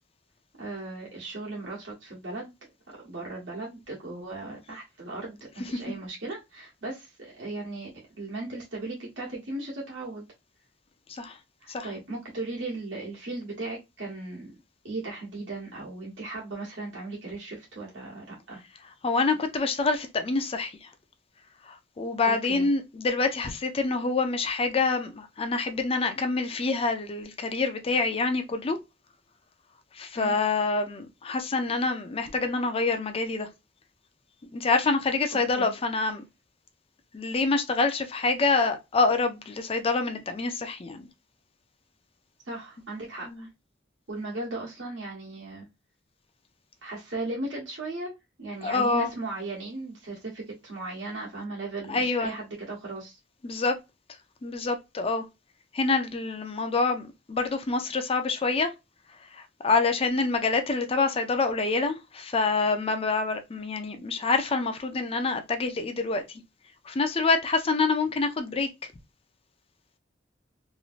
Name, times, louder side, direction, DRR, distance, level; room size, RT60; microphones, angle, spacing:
voice 1, 0.6-2.5 3.0-7.9 8.2-10.2 11.6-14.6 14.8-18.6 22.2-22.7 30.1-30.3 35.6-35.7 42.5-43.5 44.1-45.7 46.8-48.1 48.4-53.2, right 2 dB, 80° right, 1.2 m, -37 dB
voice 2, 19.0-20.9 21.7-28.8 30.0-33.5 34.5-36.2 37.1-41.0 43.3-43.5 48.6-49.1 51.9-52.3 53.4-53.8 54.4-55.2 55.7-58.7 59.3-66.2 66.9-68.7, left 3 dB, 30° left, 0.4 m, -26 dB
3.0 x 2.6 x 2.4 m
head